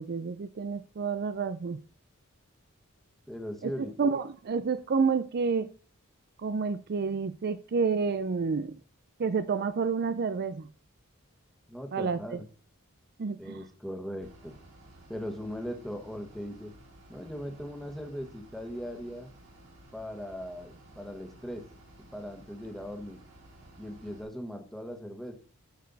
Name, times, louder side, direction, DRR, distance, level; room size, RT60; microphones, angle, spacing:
voice 1, 0.0-1.8 3.6-3.7 4.0-5.7 6.4-8.8 9.2-10.7 11.9-12.4 13.2-13.6, right 5 dB, 50° right, 0.4 m, -29 dB
voice 2, 3.3-4.1 11.7-12.4 13.4-14.5 15.1-16.7 17.1-19.3 19.9-21.6 22.1-23.2 23.8-25.3, equal, ahead, 1.4 m, -39 dB
Bus / Idling, 14.2-24.2, right 1 dB, 75° right, 4.0 m, -54 dB
10.5 x 6.5 x 4.1 m
head